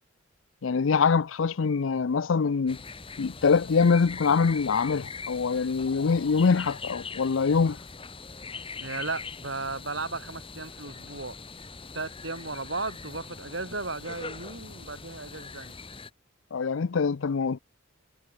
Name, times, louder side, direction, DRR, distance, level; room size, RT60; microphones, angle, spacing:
voice 1, 0.6-2.8 3.2-7.8 16.5-17.6, left 5 dB, 70° left, 0.5 m, -24 dB
sound 1, 2.7-16.1, left 4 dB, 25° left, 2.0 m, -42 dB
voice 2, 8.8-11.4 11.9-15.8, right 3 dB, 60° right, 7.5 m, -35 dB
head